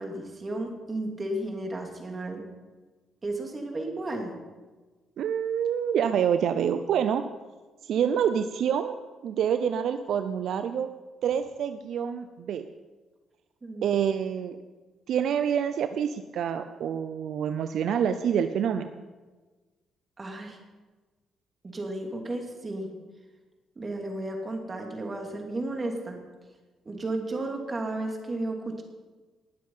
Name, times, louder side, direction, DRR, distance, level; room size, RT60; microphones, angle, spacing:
voice 1, 0.0-2.4 3.2-4.3 13.6-14.0 20.2-20.6 21.6-22.9 23.8-26.2 26.8-28.8, right 2 dB, 30° right, 2 dB, 2.8 m, -33 dB
voice 2, 5.2-7.2 7.8-9.0 9.2-10.9 11.2-12.6 13.8-14.6 15.1-18.9, right 8 dB, 70° right, 10 dB, 0.6 m, -27 dB
19.5 x 7.5 x 5.6 m, 1.3 s
cardioid pair, 90°, 0 cm